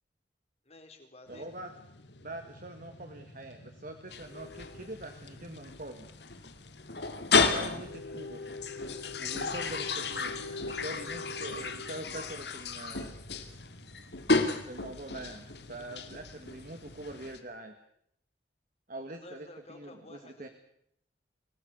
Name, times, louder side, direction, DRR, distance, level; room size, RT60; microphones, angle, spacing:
voice 1, 0.7-1.6 19.1-20.5, left 1 dB, 35° left, 5 dB, 4.1 m, -51 dB
sound 1, 1.3-17.3, left 2 dB, 85° left, 1.7 m, -47 dB
voice 2, 1.3-1.7 2.2-6.1 7.0-7.1 7.4-8.6 9.2-10.4 10.7-13.1 14.5-17.7 18.9-20.5, right 1 dB, 50° right, 5 dB, 2.1 m, -44 dB
sound 2, 4.1-17.4, left 4 dB, 70° left, 2.4 m, -33 dB
25.5 x 18.5 x 8.4 m, 0.74 s
head